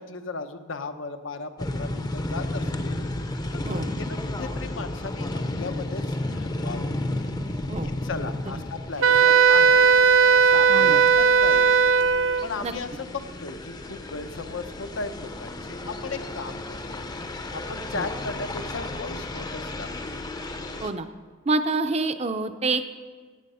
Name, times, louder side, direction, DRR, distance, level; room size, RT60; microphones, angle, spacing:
voice 1, 0.0-3.0 3.5-6.9 7.8-9.9 10.3-11.8 12.4-17.2 17.5-20.1, left 3 dB, 80° left, 8 dB, 0.8 m, -36 dB
sound 1, 1.6-20.9, left 1 dB, 20° left, 0.6 m, -33 dB
Wind instrument woodwind instrument, 9.0-12.5, right 6 dB, 80° right, 0.4 m, -17 dB
voice 2, 10.7-11.0 12.6-12.7 17.9-18.1 20.8-21.1 21.5-22.9, right 3 dB, 35° right, 9 dB, 0.6 m, -27 dB
16.0 x 7.3 x 5.6 m, 1.4 s
head